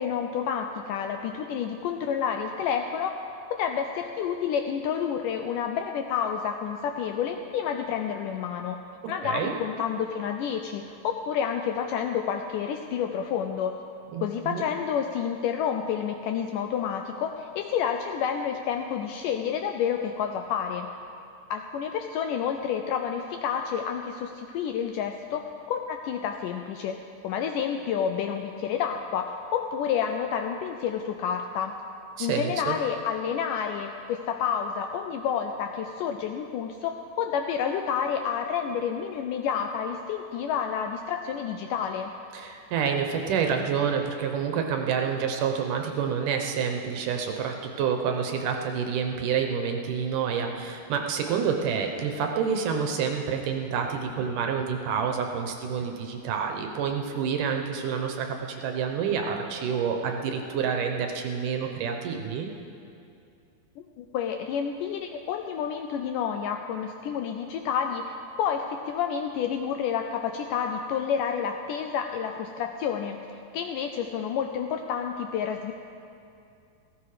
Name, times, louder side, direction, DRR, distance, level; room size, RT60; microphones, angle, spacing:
voice 1, 0.0-3.1 3.6-8.8 9.1-13.7 14.2-20.9 21.5-25.4 25.7-27.0 27.2-31.8 32.2-42.1 64.0-73.2 73.5-75.7, left 7 dB, 80° left, 5 dB, 1.9 m, -29 dB
voice 2, 9.2-9.5 14.1-14.6 32.2-32.8 42.3-62.5, right 6 dB, 70° right, 4 dB, 2.2 m, -28 dB
16.0 x 15.5 x 4.9 m, 2.5 s
omnidirectional pair, 4.3 m